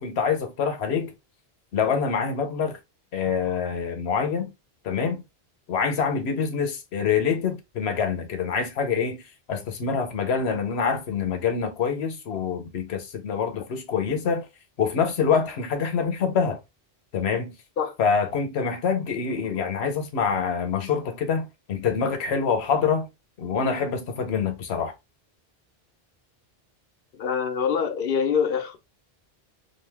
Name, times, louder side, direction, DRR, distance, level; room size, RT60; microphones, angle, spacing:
voice 1, 0.0-1.1 1.7-2.8 3.1-4.5 4.8-5.2 5.7-9.2 9.5-14.5 14.8-16.6 17.1-17.5 18.0-23.1 23.4-24.9, left 6 dB, 85° left, 1.0 m, -25 dB
voice 2, 27.2-28.8, left 6 dB, 65° left, 0.8 m, -25 dB
2.6 x 2.1 x 3.3 m
omnidirectional pair, 1.0 m